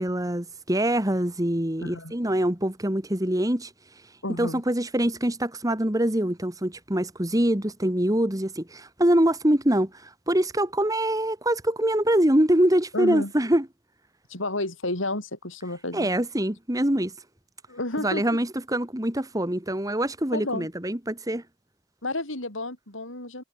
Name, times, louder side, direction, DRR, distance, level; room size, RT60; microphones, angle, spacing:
voice 1, 0.0-3.7 4.4-13.7 15.9-17.1 18.0-21.4, right 1 dB, 20° right, 2.1 m, -24 dB
voice 2, 1.8-2.1 4.2-4.6 12.9-13.3 14.3-16.1 17.7-18.2 20.3-20.7 22.0-23.4, left 2 dB, 80° left, 7.9 m, -31 dB
head